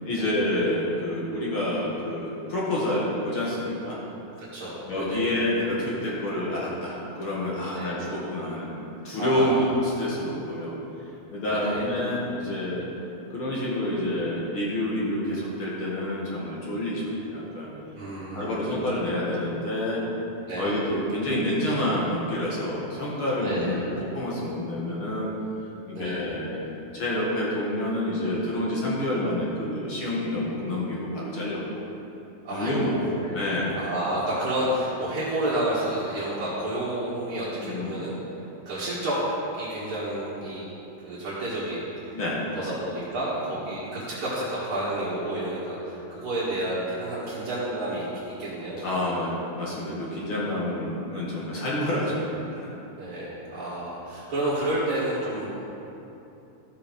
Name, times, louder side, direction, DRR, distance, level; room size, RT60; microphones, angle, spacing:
voice 1, 0.1-4.0 4.9-8.7 9.0-10.7 11.3-12.9 13.3-17.7 18.3-20.0 20.6-25.3 25.9-26.6 26.9-31.8 32.5-33.8 37.6-38.0 42.1-42.7 48.8-52.7, left 1 dB, 50° left, -6 dB, 2.3 m, -28 dB
voice 2, 4.4-5.3 7.7-8.0 9.2-9.7 11.4-11.9 18.0-18.8 20.5-20.7 23.4-23.8 25.9-26.3 32.4-38.1 38.6-39.2 39.5-40.7 41.0-42.2 42.5-48.1 48.4-49.2 53.0-55.6, right 1 dB, 50° right, -11 dB, 2.6 m, -30 dB
13.0 x 7.3 x 5.3 m, 2.9 s
omnidirectional pair, 3.3 m